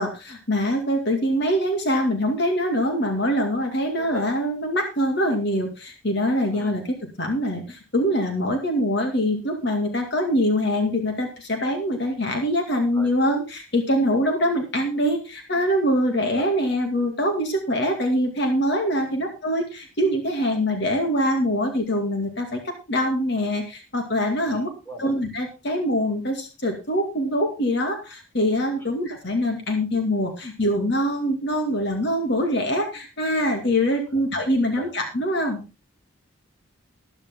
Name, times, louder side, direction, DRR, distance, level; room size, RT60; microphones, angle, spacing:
voice 1, 0.0-6.8 7.2-24.7 25.0-35.6, equal, 55° left, 4 dB, 2.3 m, -24 dB
voice 2, 24.4-25.1 28.8-28.9 34.1-34.2 34.6-34.9, right 2 dB, 10° left, 2 dB, 4.1 m, -40 dB
13.5 x 11.5 x 3.7 m, 0.29 s
head